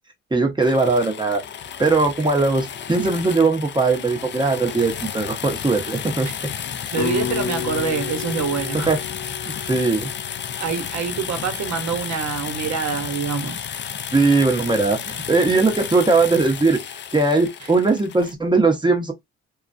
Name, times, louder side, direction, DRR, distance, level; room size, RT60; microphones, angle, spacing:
voice 1, 0.3-1.4 1.8-6.3 8.7-9.0 9.7-10.1 14.1-16.8 17.1-19.1, right 3 dB, 15° right, 0.8 m, -19 dB
sound 1, 0.6-18.3, left 8 dB, 40° left, 0.4 m, -32 dB
voice 2, 6.9-9.0 9.4-9.7 10.6-13.6 17.6-17.7, right 6 dB, 65° right, 0.9 m, -26 dB
sound 2, 7.0-11.2, left 7 dB, 75° left, 0.9 m, -31 dB
2.3 x 2.2 x 2.5 m
cardioid pair, 90°, 30 cm